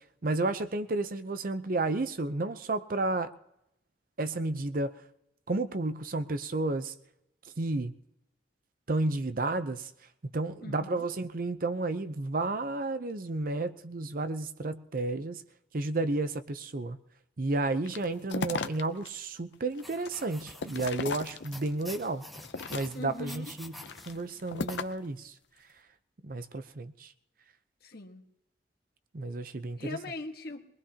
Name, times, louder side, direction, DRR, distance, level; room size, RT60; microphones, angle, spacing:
voice 1, 0.2-3.3 4.2-4.9 5.5-6.9 7.6-7.9 8.9-9.9 10.3-15.4 15.7-17.0 17.4-22.2 22.7-23.7 24.1-25.3 26.2-27.1 29.1-30.0, right 2 dB, 55° right, 11 dB, 0.7 m, -32 dB
voice 2, 10.6-11.1 22.9-23.5 27.8-28.2 29.8-30.7, left 2 dB, 60° left, 4 dB, 1.5 m, -40 dB
sound 1, 17.9-19.1 19.5-21.8 22.3-23.2 23.7-25.1, left 4 dB, 85° left, 0.7 m, -37 dB
sound 2, 19.8-24.8, left 1 dB, ahead, 1.1 m, -48 dB
22.5 x 20.5 x 2.9 m, 0.82 s
head